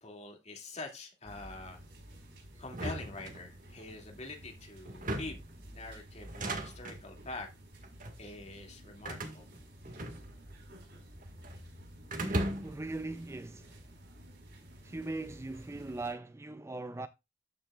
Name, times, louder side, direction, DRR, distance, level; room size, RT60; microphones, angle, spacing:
voice 1, 0.0-1.8 2.6-5.4 5.7-7.5 8.2-9.5, left 2 dB, 40° left, 2.5 m, -45 dB
sound 1, 1.2-16.1, equal, 70° right, 4.8 m, -52 dB
sound 2, 2.7-3.9 4.9-5.5 6.2-7.0 7.8-8.2 9.0-10.6 10.8-11.6 12.1-12.9, right 1 dB, 50° right, 1.9 m, -38 dB
voice 2, 12.1-13.8 14.8-17.1, right 2 dB, 15° right, 0.4 m, -39 dB
13.0 x 6.1 x 2.4 m
head